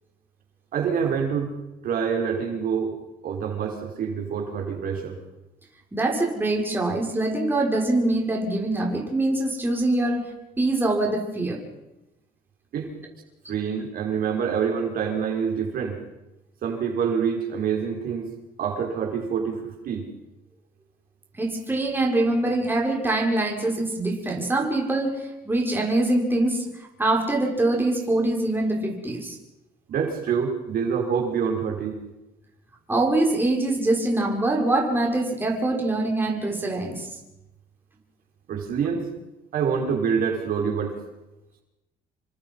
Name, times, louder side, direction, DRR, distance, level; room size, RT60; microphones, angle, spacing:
voice 1, 0.7-1.5 1.8-2.9 3.2-5.2 12.7-12.9 13.5-16.0 16.6-18.3 18.6-20.0 29.9-31.9 38.5-39.1 39.5-41.0, right 6 dB, 60° right, 1 dB, 5.5 m, -26 dB
voice 2, 5.9-10.2 10.6-11.6 21.4-29.4 32.9-37.1, right 2 dB, 10° right, -1 dB, 6.3 m, -24 dB
28.5 x 25.0 x 5.7 m, 0.97 s
cardioid pair, 110°, 17 cm